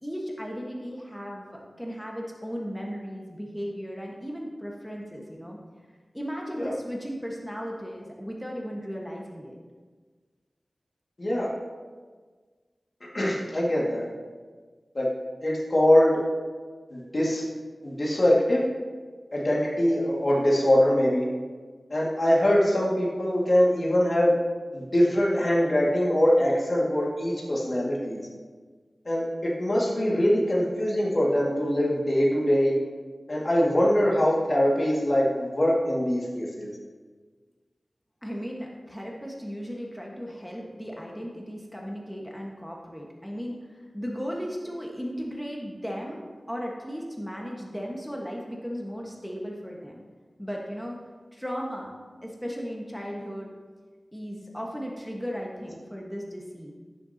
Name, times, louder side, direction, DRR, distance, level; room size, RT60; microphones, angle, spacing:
voice 1, 0.0-5.6 6.1-9.5 38.2-43.5 43.9-50.0 50.4-51.0 51.3-51.9 52.2-53.5 54.1-56.7, equal, 5° left, -2 dB, 1.4 m, -36 dB
voice 2, 11.2-11.5 13.1-14.1 14.9-15.1 15.4-16.2 16.9-17.4 17.8-18.6 19.3-21.3 21.9-24.4 24.7-28.2 29.1-32.7 33.3-36.7, equal, 45° left, -4 dB, 2.0 m, -23 dB
15.5 x 6.8 x 2.8 m, 1.5 s
wide cardioid pair, 60°, 0 cm